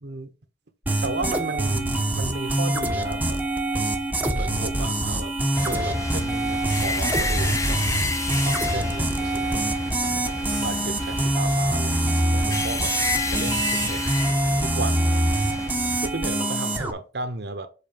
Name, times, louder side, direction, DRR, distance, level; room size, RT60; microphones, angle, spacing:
sound 1, 0.9-16.9, right 1 dB, 10° right, 1.1 m, -25 dB
voice 1, 1.0-3.4 4.3-7.8 8.4-9.7 10.5-13.0 13.3-14.1 14.6-15.1 16.0-17.7, right 2 dB, 65° right, 1.1 m, -34 dB
sound 2, 5.5-16.1, left 3 dB, 20° left, 0.7 m, -30 dB
7.8 x 4.1 x 5.3 m
head